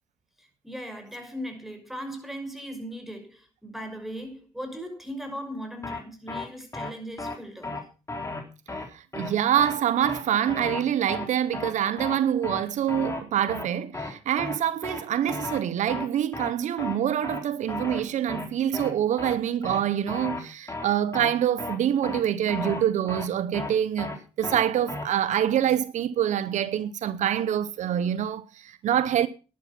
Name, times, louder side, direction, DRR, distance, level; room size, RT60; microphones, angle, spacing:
voice 1, 0.4-7.8, equal, ahead, 6.0 m, -38 dB
sound 1, 5.8-6.0 6.3-6.5 6.7-6.9 7.2-7.4 7.6-7.8 8.1-8.4 8.7-8.9 9.1-9.3 9.6-9.8 10.0-10.2 10.5-10.8 11.1-11.3 11.5-11.7 12.0-12.2 12.4-12.6 12.9-13.2 13.5-13.7 13.9-14.1 14.4-14.6 14.8-15.0 15.3-15.6 15.9-16.1 16.3-16.5 16.8-17.0 17.2-17.4 17.7-18.0 18.3-18.5 18.7-18.9 19.2-19.4 19.6-19.8 20.1-20.4 20.7-20.9 21.1-21.3 21.6-21.8 22.0-22.2 22.5-22.8 23.1-23.3 23.5-23.7 24.0-24.2 24.4-24.6 24.9-25.0, left 3 dB, 25° left, 4.0 m, -34 dB
voice 2, 8.9-29.3, right 10 dB, 75° right, 0.7 m, -26 dB
11.5 x 11.5 x 5.8 m
cardioid pair, 75°, 13 cm